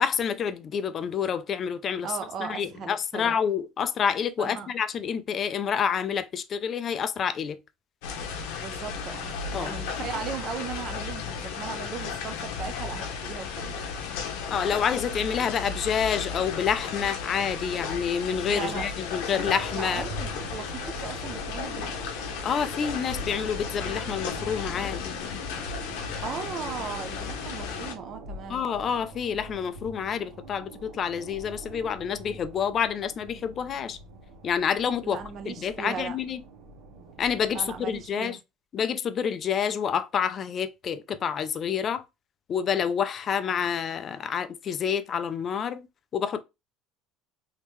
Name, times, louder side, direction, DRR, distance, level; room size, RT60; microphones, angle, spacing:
voice 1, 0.0-2.1 2.4-7.6 9.5-9.7 14.5-20.0 22.4-25.0 28.5-34.0 34.4-35.2 35.5-36.4 37.2-38.4 38.7-42.0 42.5-45.8 46.1-46.4, left 7 dB, 30° left, 0.3 m, -28 dB
voice 2, 2.0-3.4 4.4-4.7 8.6-13.7 18.5-19.1 19.7-22.1 26.2-28.6 35.0-36.2 37.5-38.4, right 7 dB, 40° right, 0.5 m, -37 dB
sound 1, 8.0-27.9, left 6 dB, 85° left, 0.8 m, -34 dB
sound 2, 19.4-38.1, right 1 dB, 85° right, 1.2 m, -43 dB
3.5 x 2.7 x 3.0 m
cardioid pair, 160°, 0 cm